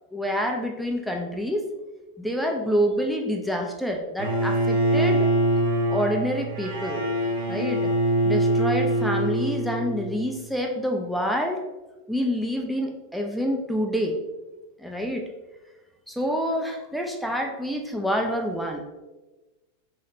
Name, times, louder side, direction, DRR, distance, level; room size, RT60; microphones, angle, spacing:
voice 1, 0.1-1.6 2.2-5.3 5.9-7.0 7.5-7.8 8.2-11.6 12.1-14.1 14.8-15.2 16.1-18.8, equal, ahead, 1 dB, 0.4 m, -27 dB
Bowed string instrument, 4.2-10.3, right 1 dB, 50° right, 0.8 m, -24 dB
3.2 x 2.9 x 2.7 m, 1.1 s
figure-of-eight pair, 90°, 0 cm